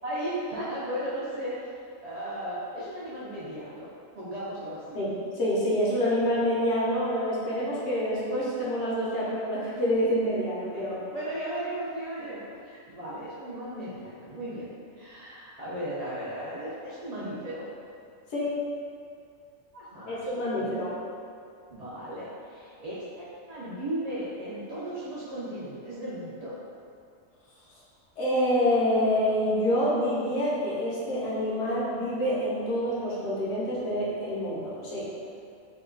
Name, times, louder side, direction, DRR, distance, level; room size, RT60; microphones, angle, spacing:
voice 1, 0.0-3.9 4.1-5.0 9.0-9.3 10.3-10.4 10.7-14.7 14.9-17.7 19.7-20.9 21.7-26.6, right 1 dB, 75° right, -10 dB, 0.3 m, -36 dB
voice 2, 4.9-11.0 18.3-18.5 20.1-20.9 28.2-35.1, equal, 65° left, -8 dB, 1.0 m, -27 dB
2.8 x 2.2 x 3.7 m, 2.4 s
omnidirectional pair, 1.4 m